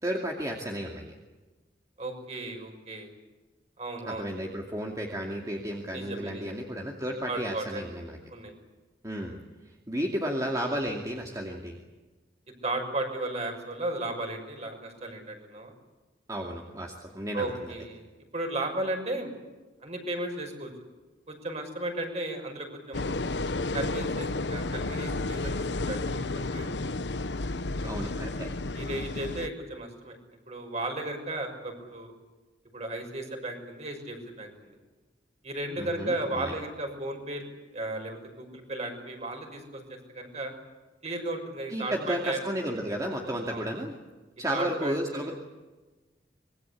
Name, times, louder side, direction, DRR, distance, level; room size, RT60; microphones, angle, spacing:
voice 1, 0.0-1.1 4.1-8.2 9.0-9.4 9.7-11.8 16.3-17.5 27.8-28.5 35.8-36.5 41.7-43.9 44.4-45.3, equal, 20° right, 0 dB, 2.5 m, -33 dB
voice 2, 2.0-3.1 3.8-4.3 5.9-6.6 7.3-7.8 8.3-8.5 12.6-15.7 17.3-18.0 18.3-19.3 19.8-20.7 21.3-23.0 23.7-26.7 27.8-27.9 28.7-30.2 30.5-32.1 32.7-34.8 35.4-40.5 41.0-42.4 43.5-43.7 44.5-45.3, right 2 dB, 40° right, 4 dB, 6.2 m, -35 dB
sound 1, 22.9-29.5, left 2 dB, 90° left, 1.0 m, -32 dB
25.5 x 22.5 x 8.4 m, 1.2 s
head